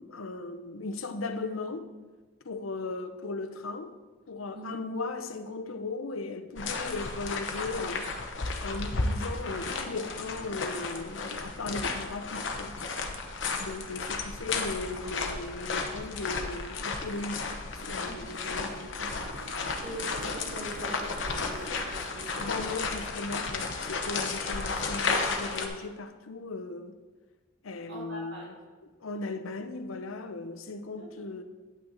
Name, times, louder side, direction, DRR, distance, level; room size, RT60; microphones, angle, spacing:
voice 1, 0.0-1.9 2.4-4.0 4.3-8.1 8.6-12.8 13.6-19.2 22.4-27.0 27.6-28.6 29.0-31.4, left 3 dB, 85° left, 0.8 m, -37 dB
sound 1, 6.6-25.7, left 4 dB, 60° left, 0.9 m, -33 dB
Zipper (clothing), 17.0-18.0 18.3-23.0, right 3 dB, 80° right, 0.7 m, -47 dB
voice 2, 19.8-22.7 27.9-28.5 31.0-31.2, right 1 dB, 55° right, 2.7 m, -43 dB
9.1 x 8.8 x 3.9 m
head